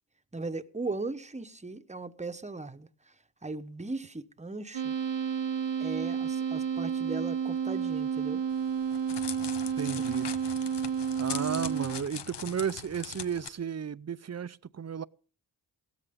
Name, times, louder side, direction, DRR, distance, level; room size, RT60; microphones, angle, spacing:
voice 1, 0.3-2.9 3.4-4.9 5.8-8.4, right 3 dB, 15° right, 1.0 m, -38 dB
sound 1, 4.7-12.0, right 7 dB, 75° right, 0.8 m, -31 dB
Crackle, 8.5-13.5, left 8 dB, 65° left, 0.9 m, -41 dB
voice 2, 9.8-10.3 11.2-15.0, right 7 dB, 35° right, 0.5 m, -34 dB
16.5 x 13.0 x 3.7 m
cardioid pair, 60°, 44 cm